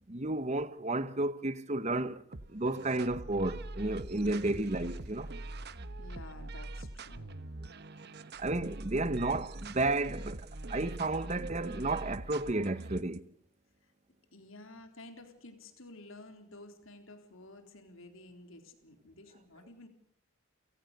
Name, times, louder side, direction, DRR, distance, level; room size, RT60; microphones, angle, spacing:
voice 1, 0.1-2.2 2.5-5.3 8.4-13.3, right 2 dB, 30° right, 1.1 m, -32 dB
sound 1, 2.3-13.2, right 2 dB, 50° right, 1.1 m, -43 dB
voice 2, 6.0-7.3 7.9-8.1 13.8-13.9 14.3-19.9, left 2 dB, 70° left, 3.7 m, -52 dB
29.5 x 17.5 x 6.7 m
head